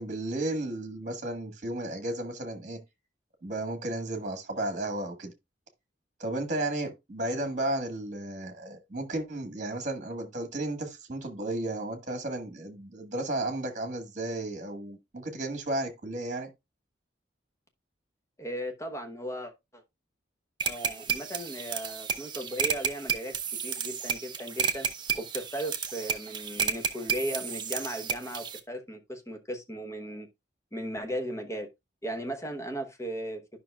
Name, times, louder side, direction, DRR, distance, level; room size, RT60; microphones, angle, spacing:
voice 1, 0.0-2.8 3.4-5.3 6.2-16.5, right 1 dB, 40° right, 1.5 m, -33 dB
voice 2, 18.4-19.8 20.7-23.3 23.6-24.9 25.1-30.3 30.7-31.7 32.0-33.4, right 1 dB, 15° left, 1.0 m, -36 dB
sound 1, 20.6-28.6, right 7 dB, 25° right, 0.7 m, -32 dB
11.0 x 5.6 x 2.3 m
head